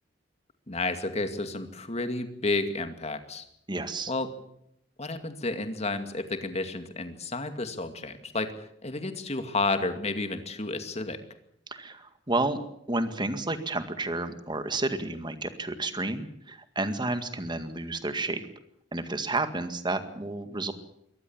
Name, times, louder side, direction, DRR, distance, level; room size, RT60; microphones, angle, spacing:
voice 1, 0.7-3.4 4.1-4.3 5.0-11.2, left 3 dB, 35° left, 8 dB, 2.3 m, -31 dB
voice 2, 3.7-4.1 11.7-12.6 12.9-18.4 18.9-20.7, right 2 dB, 25° right, 9 dB, 2.0 m, -31 dB
23.5 x 18.5 x 7.4 m, 0.74 s
head